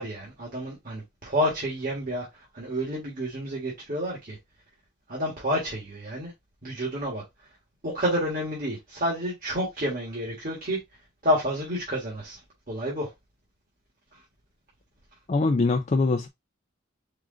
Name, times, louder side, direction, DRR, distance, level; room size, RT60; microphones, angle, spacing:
voice 1, 0.0-4.4 5.1-6.3 6.6-7.2 7.8-10.8 11.2-12.4 12.7-13.1, equal, 45° right, 1.7 m, -29 dB
voice 2, 15.3-16.3, left 3 dB, 35° left, 0.4 m, -23 dB
4.8 x 2.5 x 3.8 m
head